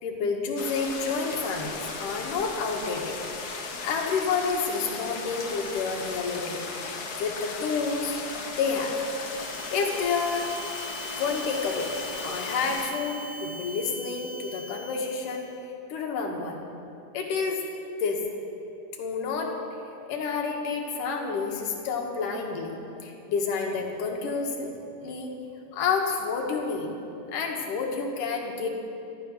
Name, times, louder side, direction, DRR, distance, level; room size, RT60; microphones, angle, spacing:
voice 1, 0.0-3.2 3.8-6.6 7.2-8.2 8.5-9.0 9.7-10.5 11.1-11.9 12.2-15.5 15.9-16.6 17.1-17.6 18.0-18.2 19.0-19.5 20.1-22.8 23.0-25.3 25.7-26.9 27.3-28.7, left 5 dB, 85° left, 1 dB, 3.2 m, -29 dB
sound 1, 0.6-12.9, left 4 dB, 65° left, 0.9 m, -36 dB
sound 2, 8.9-15.5, equal, 65° right, 3.7 m, -42 dB
14.0 x 13.5 x 6.6 m, 2.8 s
omnidirectional pair, 3.6 m